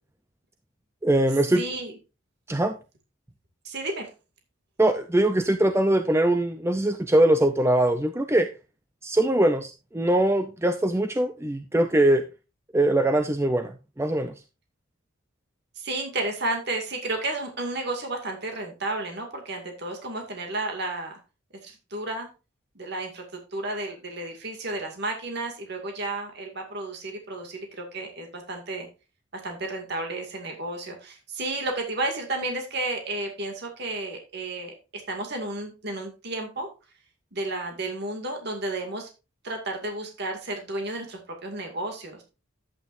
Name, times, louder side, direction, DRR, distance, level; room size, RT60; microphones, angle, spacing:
voice 1, 1.0-1.6 2.5-2.7 4.8-8.5 9.0-12.2 12.7-14.3, right 1 dB, 15° right, 8 dB, 0.5 m, -22 dB
voice 2, 1.5-1.9 3.6-4.1 15.8-21.2 21.6-22.3 22.8-23.2 23.5-28.9 29.3-36.7 37.3-39.1 39.4-42.2, right 2 dB, 55° right, 3 dB, 2.3 m, -32 dB
11.0 x 8.9 x 2.6 m, 0.29 s
head